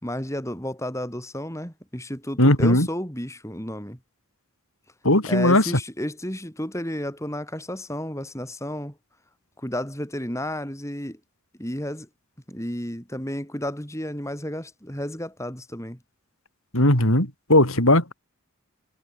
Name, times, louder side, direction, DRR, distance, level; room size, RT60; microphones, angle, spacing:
voice 1, 0.0-4.0 5.3-8.9 9.6-11.2 11.6-12.1 12.5-16.0, left 1 dB, 15° left, 6.4 m, -32 dB
voice 2, 2.4-2.9 5.0-5.6 16.7-18.1, left 1 dB, 70° left, 8.0 m, -18 dB
head